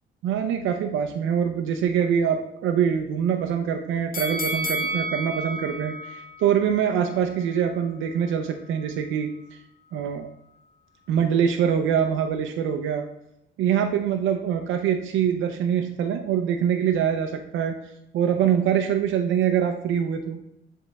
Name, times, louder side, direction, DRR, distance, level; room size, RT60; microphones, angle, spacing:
voice 1, 0.2-9.3 9.9-10.3 11.1-13.1 13.6-17.7 18.1-20.4, right 8 dB, 85° right, 5 dB, 0.6 m, -24 dB
sound 1, 4.1-7.2 7.6-7.7, right 1 dB, 45° left, 0.9 m, -31 dB
7.4 x 3.5 x 4.1 m, 0.82 s
cardioid pair, 90°, 20 cm